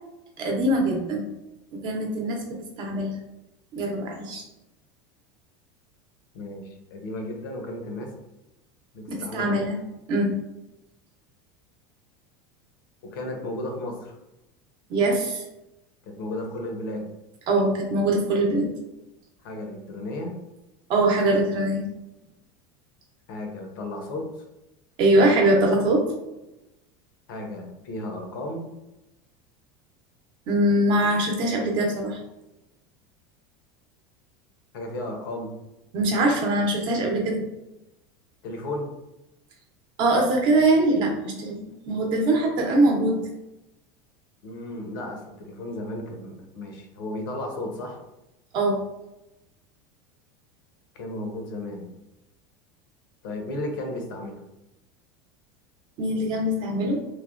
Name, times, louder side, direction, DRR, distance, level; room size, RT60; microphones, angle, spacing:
voice 1, 0.4-1.2 1.8-2.4 2.8-3.1 3.7-4.4 9.1-9.8 10.1-10.3 14.9-15.4 17.5-18.7 20.9-21.8 25.0-26.0 30.5-32.2 35.9-37.4 40.0-41.5 41.9-43.2 48.5-48.8 56.0-57.0, right 1 dB, 45° right, 1 dB, 0.7 m, -22 dB
voice 2, 6.3-8.1 8.9-9.5 13.1-14.1 16.1-17.0 19.4-20.3 23.3-24.3 27.3-28.6 34.7-35.5 38.4-38.9 44.4-48.0 51.0-51.9 53.2-54.4, left 1 dB, 85° left, 2 dB, 0.7 m, -34 dB
3.1 x 2.1 x 2.4 m, 0.94 s
supercardioid pair, 150°, 11 cm